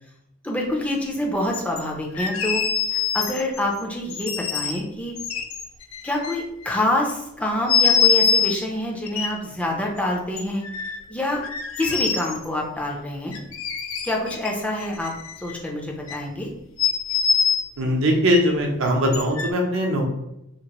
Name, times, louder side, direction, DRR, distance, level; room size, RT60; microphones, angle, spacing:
voice 1, 0.4-2.6 2.9-5.2 6.0-10.6 11.1-11.4 11.8-13.4 14.0-15.1 15.4-16.5, left 1 dB, 5° left, -1 dB, 0.4 m, -26 dB
sound 1, 1.5-1.8 2.1-3.6 4.1-4.8 5.2-6.7 7.7-8.6 9.1-9.3 10.4-11.0 11.4-12.4 13.3-14.5 14.8-15.7 16.1-16.2 16.8-17.6 18.3-18.4 19.1-19.5, left 6 dB, 70° left, 0.4 m, -23 dB
voice 2, 17.8-20.0, equal, 70° right, 1 dB, 0.6 m, -21 dB
2.8 x 2.5 x 2.9 m, 0.84 s
head